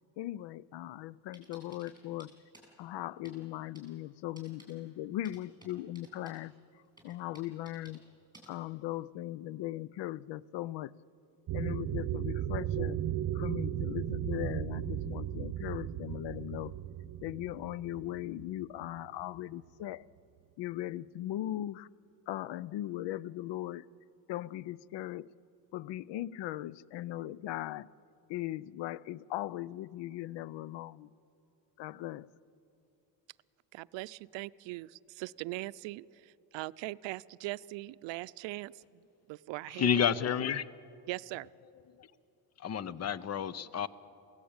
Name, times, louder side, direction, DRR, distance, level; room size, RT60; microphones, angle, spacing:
voice 1, 0.2-2.3 2.8-6.5 7.0-8.0 8.5-10.9 11.5-13.0 13.3-16.7 17.2-20.1 20.6-21.9 22.3-23.9 24.3-25.3 25.7-27.9 28.3-31.1 31.8-32.3, left 14 dB, 75° left, 22 dB, 0.6 m, -39 dB
sound 1, 1.3-2.7 3.2-3.4 3.7-3.9 4.4-4.7 5.2-6.4 7.0-8.0 8.3-8.5, right 1 dB, 10° right, 7.4 m, -56 dB
sound 2, 11.5-19.4, right 12 dB, 55° right, 0.9 m, -36 dB
voice 2, 33.7-39.0 39.3-39.9 41.1-41.5, right 19 dB, 85° right, 17 dB, 0.6 m, -41 dB
voice 3, 39.7-40.7 42.0-42.1 42.6-43.9, left 8 dB, 35° left, 18 dB, 0.7 m, -30 dB
23.5 x 16.5 x 8.8 m, 2.7 s
cardioid pair, 115°, 43 cm